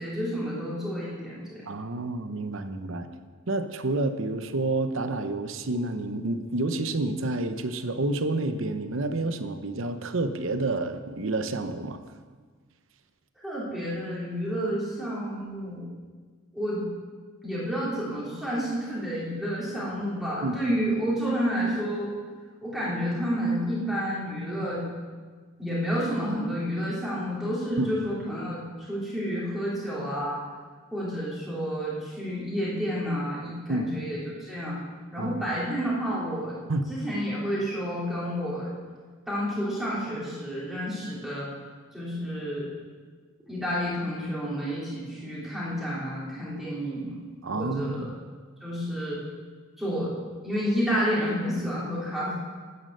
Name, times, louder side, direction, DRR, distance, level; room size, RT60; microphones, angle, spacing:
voice 1, 0.0-1.6 13.4-15.9 16.5-16.8 17.4-22.1 22.6-24.8 25.6-30.4 30.9-34.8 35.1-36.6 36.9-38.7 39.3-41.5 41.9-42.7 43.5-47.2 47.5-48.1 48.6-49.2 49.8-50.1 50.4-52.4, equal, ahead, -8 dB, 3.1 m, -30 dB
voice 2, 1.7-3.1 3.5-12.0 20.4-20.7 27.8-27.9 33.7-33.9 35.2-35.4 36.7-36.9 47.4-48.1, right 2 dB, 60° right, 9 dB, 0.8 m, -29 dB
10.5 x 9.7 x 6.6 m, 1.5 s
head